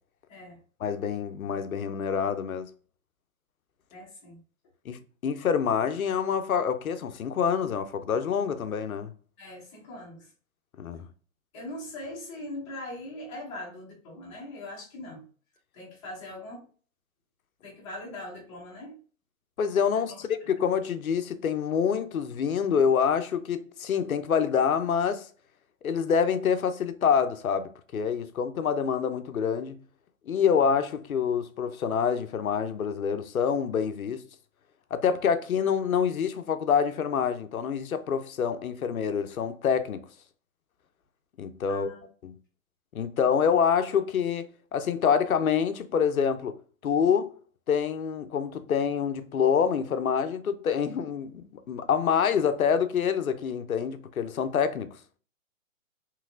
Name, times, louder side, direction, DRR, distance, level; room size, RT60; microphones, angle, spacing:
voice 1, 0.8-2.7 4.9-9.1 10.8-11.1 19.6-25.3 25.8-29.8 30.3-34.2 34.9-40.1 41.4-41.9 42.2-42.3 42.9-46.6 46.8-47.3 47.7-54.9, left 7 dB, 90° left, 0.6 m, -26 dB
voice 2, 3.9-4.4 9.4-10.3 11.5-15.3 15.7-16.6 17.6-19.0 19.9-20.5 41.7-42.1, left 1 dB, 20° left, 1.0 m, -41 dB
3.1 x 2.9 x 2.4 m
hypercardioid pair, 145°, 41 cm